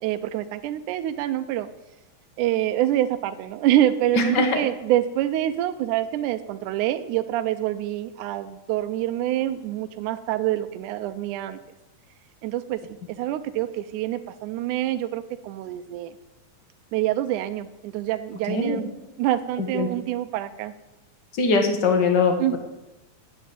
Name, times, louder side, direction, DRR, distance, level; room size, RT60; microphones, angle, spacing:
voice 1, 0.0-1.7 2.4-11.6 12.4-12.8 13.1-16.1 16.9-18.9 19.2-20.7 22.4-22.6, right 13 dB, 80° right, 9 dB, 2.0 m, -26 dB
voice 2, 4.1-4.6 18.5-18.8 19.7-19.9 21.3-22.4, left 4 dB, 45° left, 5 dB, 1.7 m, -21 dB
9.6 x 8.0 x 8.5 m, 0.99 s
omnidirectional pair, 3.6 m